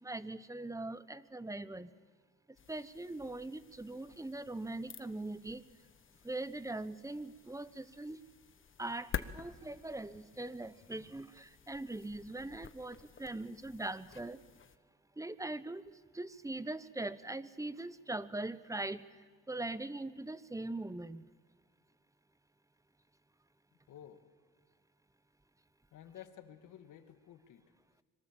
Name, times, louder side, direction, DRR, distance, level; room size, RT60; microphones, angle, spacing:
voice 1, 0.0-1.9 2.7-5.6 6.2-8.2 8.8-14.4 15.2-15.8 16.1-19.0 19.5-21.3, right 2 dB, 10° right, 16 dB, 1.0 m, -41 dB
sound 1, 2.5-14.8, left 7 dB, 40° left, 1.2 m, -50 dB
voice 2, 23.7-24.2 25.9-27.6, left 10 dB, 80° left, 9 dB, 2.1 m, -53 dB
25.0 x 23.0 x 7.6 m, 1.5 s
cardioid pair, 90°, 30 cm